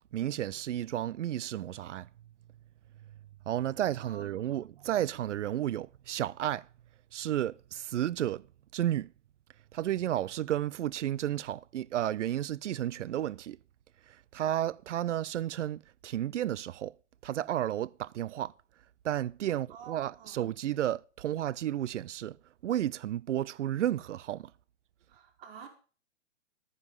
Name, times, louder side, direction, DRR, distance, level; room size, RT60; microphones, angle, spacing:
voice 1, 0.1-2.1 3.5-6.7 7.1-8.4 8.7-9.1 9.7-13.6 14.3-16.9 17.2-18.5 19.0-22.4 22.6-24.5, right 12 dB, 75° right, 0.6 m, -32 dB
voice 2, 4.0-4.9 19.7-20.4 25.1-25.7, right 7 dB, 50° right, 4.2 m, -50 dB
11.0 x 9.5 x 5.4 m
hypercardioid pair, 140°, 36 cm